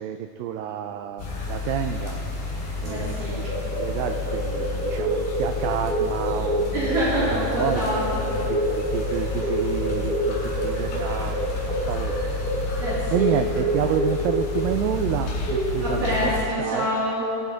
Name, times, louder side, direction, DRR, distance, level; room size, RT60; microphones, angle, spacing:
voice 1, 0.0-2.2 2.8-7.9 8.5-11.4 11.7-12.3 13.1-16.9, right 10 dB, 90° right, 7 dB, 2.0 m, -29 dB
sound 1, 1.2-16.4, left 1 dB, 70° left, 4.7 m, -26 dB
voice 2, 2.8-3.4 6.7-8.3 12.8-13.3 15.8-17.2, equal, 60° right, -9 dB, 3.9 m, -26 dB
18.5 x 11.5 x 3.9 m, 2.6 s
omnidirectional pair, 4.5 m